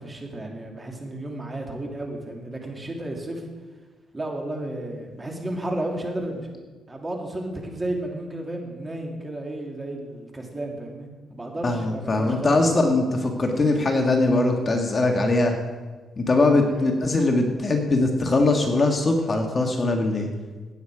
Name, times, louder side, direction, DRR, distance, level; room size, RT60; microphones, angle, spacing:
voice 1, 0.0-3.4 4.1-6.5 6.9-12.6 16.7-16.9, right 1 dB, 20° right, 1 dB, 2.8 m, -33 dB
voice 2, 11.6-15.5 16.2-20.3, left 2 dB, 30° left, 3 dB, 1.7 m, -21 dB
15.5 x 9.4 x 4.9 m, 1.3 s
cardioid pair, 90°, 0 cm